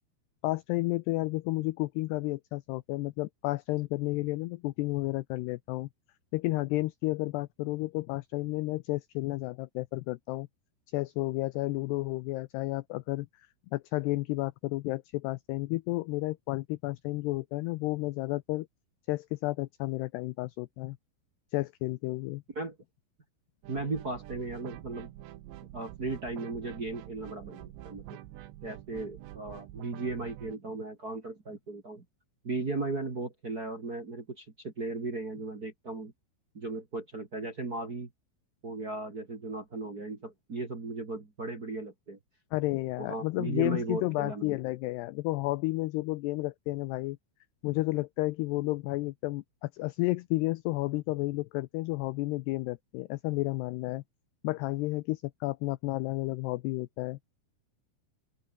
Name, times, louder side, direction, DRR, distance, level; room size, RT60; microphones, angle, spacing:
voice 1, 0.4-5.9 6.3-10.5 10.9-13.3 13.7-18.7 19.1-21.0 21.5-22.4 42.5-47.2 47.6-54.0 54.4-57.2, left 20 dB, 85° left, 2.3 m, -32 dB
sound 1, 23.6-30.6, right 14 dB, 75° right, 3.3 m, -47 dB
voice 2, 23.7-25.1 25.7-28.2 28.6-32.0 32.4-36.1 36.5-38.1 38.6-42.2 43.0-44.6, right 3 dB, 30° right, 1.8 m, -36 dB
open air
omnidirectional pair, 5.5 m